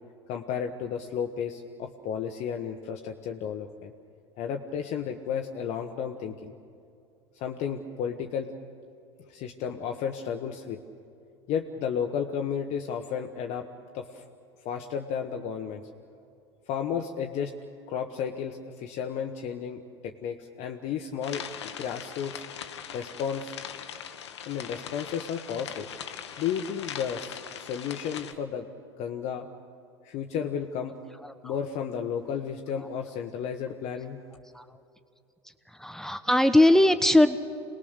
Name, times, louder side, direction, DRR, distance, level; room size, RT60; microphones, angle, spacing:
voice 1, 0.3-3.9 4.4-6.5 7.4-8.5 9.3-10.8 11.5-13.7 13.9-14.2 14.6-15.8 16.7-17.5 17.9-22.4 22.9-23.6 24.4-25.9 26.4-28.7 29.0-29.5 30.0-30.9 31.4-34.2, left 7 dB, 55° left, 3 dB, 1.4 m, -33 dB
sound 1, 21.2-28.3, left 8 dB, 85° left, 1.3 m, -40 dB
voice 2, 31.2-31.6 34.5-34.8 35.7-37.4, left 1 dB, 5° left, 10 dB, 1.0 m, -21 dB
27.5 x 20.0 x 6.7 m, 2.5 s
hypercardioid pair, 85°, 14 cm